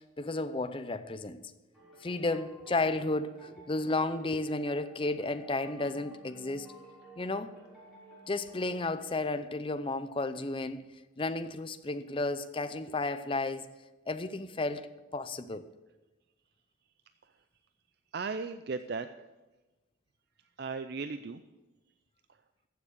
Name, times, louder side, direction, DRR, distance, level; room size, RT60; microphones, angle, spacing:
voice 1, 0.0-1.4 2.0-6.7 7.2-7.5 8.3-10.9 11.2-13.7 14.1-15.7, left 2 dB, 25° left, 0.5 m, -33 dB
sound 1, 1.7-9.1, right 2 dB, ahead, 4.2 m, -54 dB
voice 2, 18.1-19.1 20.6-21.4 22.3-22.4, right 4 dB, 50° right, 0.4 m, -36 dB
14.5 x 7.0 x 6.5 m
head